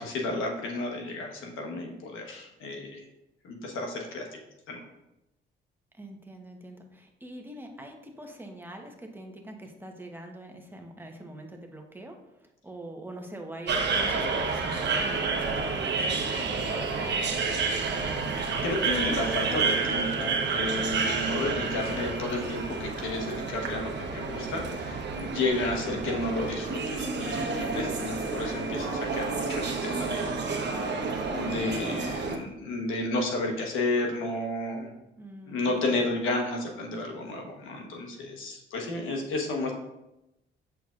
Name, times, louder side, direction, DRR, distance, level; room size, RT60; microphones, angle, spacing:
voice 1, 0.0-3.1 3.4-4.4 4.7-4.8 18.6-30.4 30.8-34.9 35.5-39.7, left 2 dB, 90° left, 2 dB, 1.2 m, -32 dB
voice 2, 5.9-17.6 21.6-22.1 35.2-35.8, right 1 dB, 10° right, 2 dB, 1.0 m, -44 dB
sound 1, 13.7-32.4, right 4 dB, 60° right, 1.0 m, -30 dB
7.8 x 6.0 x 2.5 m, 0.92 s
cardioid pair, 90°, 20 cm